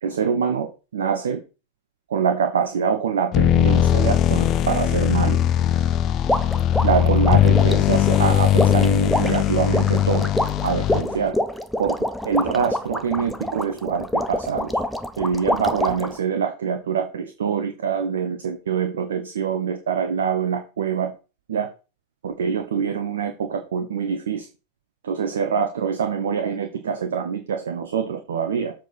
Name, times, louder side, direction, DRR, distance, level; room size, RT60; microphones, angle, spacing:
voice 1, 0.0-1.4 2.1-5.4 6.8-10.3 10.6-11.4 11.8-12.0 12.2-14.8 15.2-21.1 21.5-21.7 22.2-24.5 25.0-28.7, right 7 dB, 65° right, 6 dB, 0.9 m, -24 dB
sound 1, 3.3-11.3, left 11 dB, 35° left, 0.5 m, -19 dB
sound 2, 6.3-16.2, left 1 dB, 5° left, 0.7 m, -26 dB
7.5 x 4.3 x 5.4 m, 0.32 s
figure-of-eight pair, 90°, 0 cm